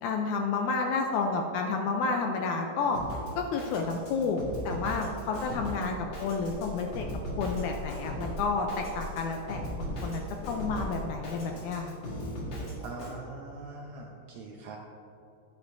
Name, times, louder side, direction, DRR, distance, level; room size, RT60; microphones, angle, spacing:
voice 1, 0.0-3.0 3.4-7.1 7.4-12.0, left 4 dB, 80° left, 3 dB, 1.8 m, -30 dB
Drum kit, 2.9-13.2, equal, 55° left, 2.4 m, -39 dB
sound 1, 4.5-11.1, equal, 65° right, 2.0 m, -43 dB
voice 2, 12.8-14.8, right 3 dB, 90° right, 0 dB, 1.6 m, -42 dB
10.5 x 9.7 x 2.6 m, 2.9 s
omnidirectional pair, 3.9 m